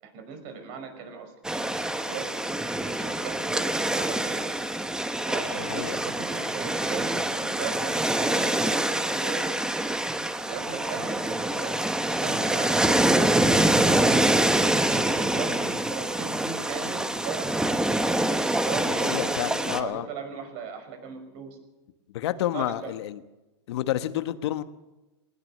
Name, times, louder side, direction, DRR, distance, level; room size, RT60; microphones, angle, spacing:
voice 1, 0.0-1.3 2.0-4.4 5.3-9.9 10.4-14.1 14.6-17.9 18.5-21.6 22.4-22.9, right 6 dB, 55° right, 7 dB, 5.7 m, -38 dB
sound 1, 1.4-19.8, right 1 dB, 5° right, 1.2 m, -25 dB
voice 2, 5.6-6.0 19.0-20.1 22.1-23.2 23.7-24.6, left 13 dB, 75° left, 11 dB, 1.3 m, -29 dB
20.0 x 19.5 x 6.6 m, 1.1 s
supercardioid pair, 135°, 14 cm